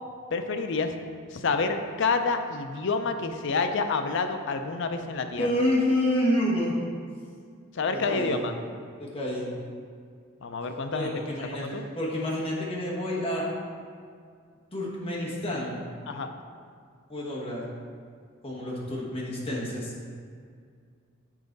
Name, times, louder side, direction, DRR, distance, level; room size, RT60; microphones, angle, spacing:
voice 1, 0.3-0.9 1.3-5.5 7.8-8.5 10.4-11.1 11.6-11.8 16.1-16.3, left 4 dB, 60° left, 7 dB, 0.5 m, -28 dB
voice 2, 5.4-6.8 7.9-8.4 9.0-9.5 10.9-13.4 14.7-15.8 17.1-17.6 18.4-19.9, left 1 dB, 25° left, -5 dB, 1.2 m, -28 dB
7.4 x 4.8 x 3.9 m, 2.2 s
head